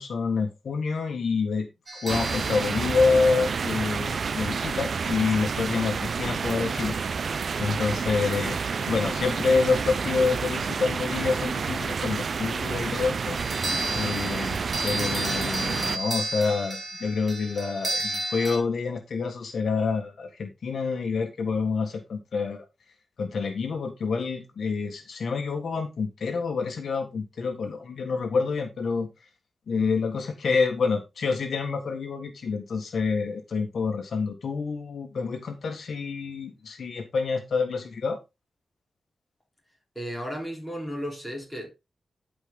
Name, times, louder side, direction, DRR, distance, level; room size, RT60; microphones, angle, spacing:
voice 1, 0.0-1.7 1.9-6.9 7.6-8.6 8.9-13.4 13.9-22.7 23.2-29.1 29.7-38.2, left 4 dB, 70° left, 1.6 m, -27 dB
sound 1, 1.9-4.1 13.4-18.6, right 2 dB, 35° right, 2.0 m, -33 dB
sound 2, 2.1-16.0, right 5 dB, 60° right, 0.5 m, -29 dB
voice 2, 40.0-41.7, equal, ahead, 4.0 m, -34 dB
12.0 x 5.2 x 3.8 m
wide cardioid pair, 125°, 0 cm